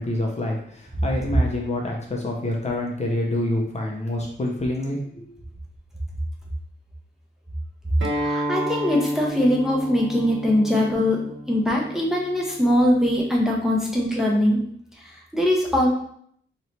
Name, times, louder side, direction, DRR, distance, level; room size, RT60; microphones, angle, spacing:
voice 1, 0.0-5.3, left 1 dB, 35° left, -1 dB, 0.6 m, -27 dB
Acoustic guitar, 8.0-13.2, equal, 70° right, 0.9 m, -32 dB
voice 2, 8.1-11.2 11.5-14.6 15.0-15.9, left 1 dB, ahead, -2 dB, 0.7 m, -21 dB
3.1 x 2.9 x 4.2 m, 0.66 s
wide cardioid pair, 165°, 21 cm